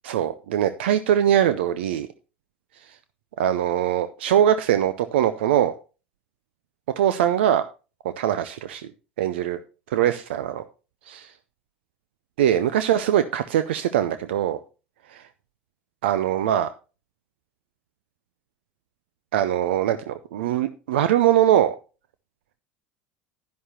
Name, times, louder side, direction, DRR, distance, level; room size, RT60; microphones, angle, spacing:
voice 1, 0.0-2.1 3.4-5.7 7.0-7.6 8.0-8.9 9.2-9.6 9.9-10.6 11.1-11.3 12.4-14.6 15.1-15.2 16.0-16.7 19.3-21.7, right 11 dB, 70° right, 12 dB, 0.5 m, -22 dB
11.0 x 10.5 x 2.7 m, 0.33 s
figure-of-eight pair, 75°, 6 cm